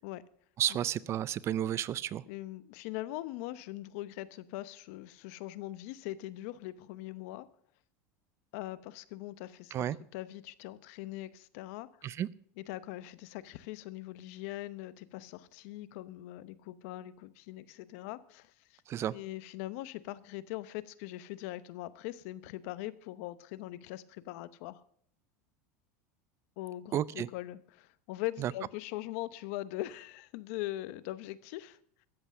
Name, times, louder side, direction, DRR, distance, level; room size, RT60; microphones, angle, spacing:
voice 1, 0.6-2.2 9.7-10.0 12.0-12.3 18.9-19.1 26.9-27.3 28.4-28.5, right 11 dB, 35° right, 0.4 m, -32 dB
voice 2, 2.3-7.5 8.5-9.9 10.1-11.9 12.6-18.8 19.1-24.8 26.6-31.8, left 16 dB, 70° left, 0.8 m, -41 dB
13.5 x 8.1 x 7.5 m
supercardioid pair, 135°, 8 cm